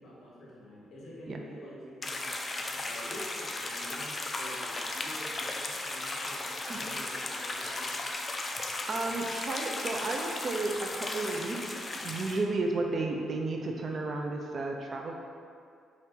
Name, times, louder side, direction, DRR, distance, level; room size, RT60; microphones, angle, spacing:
voice 1, 0.0-2.2 2.6-7.9, equal, 60° left, -5 dB, 0.9 m, -47 dB
sound 1, 2.0-12.4, left 2 dB, 30° left, 0.3 m, -36 dB
voice 2, 8.4-15.1, right 2 dB, 45° right, 1 dB, 0.3 m, -33 dB
2.7 x 2.4 x 3.6 m, 2.3 s
cardioid pair, 90°, 0 cm